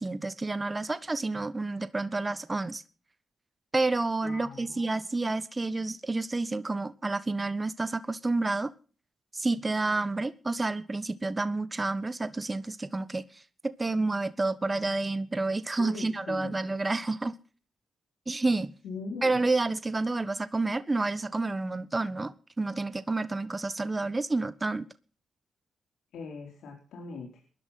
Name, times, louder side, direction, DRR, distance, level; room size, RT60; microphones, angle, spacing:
voice 1, 0.0-2.8 3.7-8.7 9.3-13.4 13.8-17.3 18.3-18.7 19.2-24.9, right 3 dB, 25° right, 1.2 m, -29 dB
voice 2, 4.2-5.0 15.8-16.6 18.8-19.4 26.1-27.3, left 4 dB, 80° left, 4.2 m, -41 dB
20.5 x 11.5 x 5.9 m
supercardioid pair, 60°, 0 cm